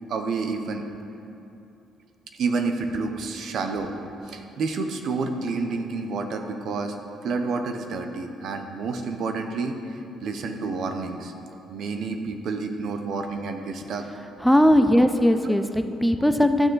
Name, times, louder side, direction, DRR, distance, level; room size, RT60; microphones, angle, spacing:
voice 1, 0.1-0.8 2.4-3.9 4.3-7.0 7.2-9.7 10.2-11.3 11.7-14.1, right 4 dB, 65° right, 6 dB, 0.7 m, -29 dB
voice 2, 14.4-16.7, equal, ahead, 8 dB, 0.4 m, -19 dB
11.5 x 6.5 x 3.9 m, 2.7 s
cardioid pair, 80°, 0 cm